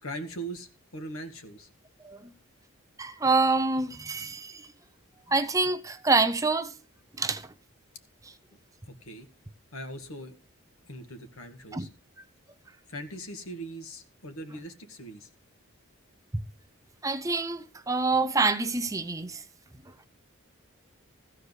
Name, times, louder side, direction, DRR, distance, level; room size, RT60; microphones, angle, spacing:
voice 1, 0.0-1.7 8.9-9.3 9.7-10.3 10.9-11.9 12.9-15.3, right 1 dB, 85° left, 2.0 m, -40 dB
voice 2, 3.0-4.5 5.3-6.7 7.2-7.4 11.7-11.9 17.0-19.4, right 3 dB, 15° right, 0.6 m, -26 dB
14.5 x 4.9 x 8.1 m
head